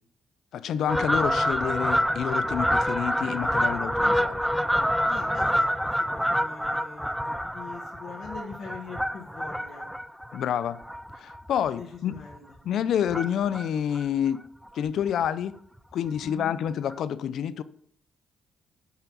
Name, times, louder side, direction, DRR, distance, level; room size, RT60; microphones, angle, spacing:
voice 1, 0.5-4.5 10.3-10.8 11.2-12.1 12.6-14.4 14.7-15.5 15.9-17.6, left 9 dB, 70° left, 0.5 m, -28 dB
Fowl, 0.9-11.7 12.1-12.4 13.1-13.7 13.9-14.0 14.3-14.4 14.7-14.8 15.1-15.3 16.3-16.4 16.9-17.0, equal, ahead, 0.4 m, -27 dB
voice 2, 5.1-9.9 11.8-12.4 16.2-16.5, left 5 dB, 50° left, 1.4 m, -43 dB
5.9 x 5.6 x 6.9 m
cardioid pair, 90°, 0 cm